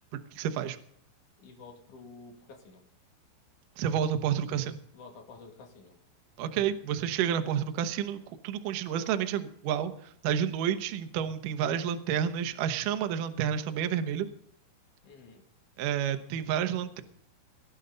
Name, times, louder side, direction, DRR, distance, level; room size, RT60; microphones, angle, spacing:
voice 1, 0.3-0.8 3.8-4.8 6.4-14.3 15.8-17.0, right 9 dB, 85° right, 8 dB, 1.8 m, -30 dB
voice 2, 1.4-2.8 4.9-6.0 15.0-15.5, left 4 dB, 50° left, 3 dB, 3.2 m, -50 dB
19.0 x 12.0 x 3.9 m, 0.62 s
omnidirectional pair, 5.6 m